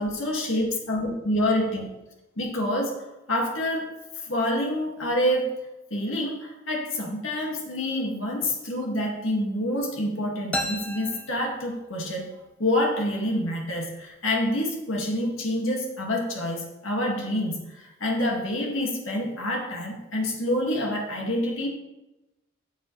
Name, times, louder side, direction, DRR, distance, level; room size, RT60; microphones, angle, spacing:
voice 1, 0.0-1.9 2.4-4.0 4.3-5.6 5.9-21.7, left 1 dB, 75° left, -1 dB, 2.1 m, -27 dB
sound 1, 10.5-12.2, left 1 dB, 5° left, 0.8 m, -34 dB
14.0 x 7.5 x 3.3 m, 0.98 s
head